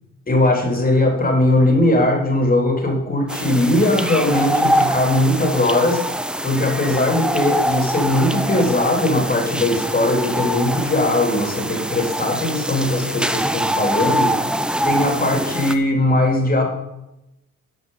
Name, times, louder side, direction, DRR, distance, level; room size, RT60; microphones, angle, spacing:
voice 1, 0.3-6.0 6.4-14.4 14.8-16.6, left 1 dB, 30° left, 2 dB, 3.2 m, -19 dB
sound 1, 3.3-15.8, right 1 dB, 5° right, 0.6 m, -24 dB
11.5 x 5.9 x 5.6 m, 0.90 s
cardioid pair, 90°, 30 cm